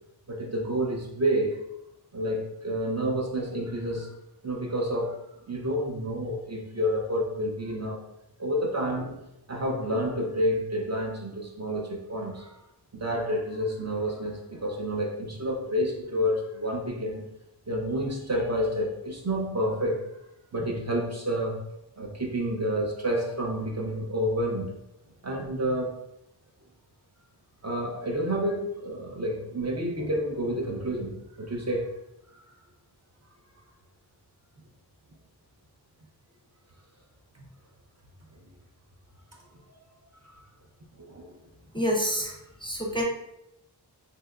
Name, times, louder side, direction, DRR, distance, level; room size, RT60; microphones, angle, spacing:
voice 1, 0.3-1.6 2.1-4.1 4.4-8.0 8.4-12.6 12.9-17.3 17.7-20.0 20.5-21.6 22.0-24.8 25.2-26.0 27.6-31.9 32.3-32.4 40.2-40.4 40.9-41.3, equal, 40° right, 0 dB, 0.6 m, -29 dB
voice 2, 41.7-42.3 42.6-43.0, equal, 10° left, -1 dB, 0.5 m, -27 dB
3.3 x 2.7 x 2.3 m, 0.84 s
wide cardioid pair, 55°, 41 cm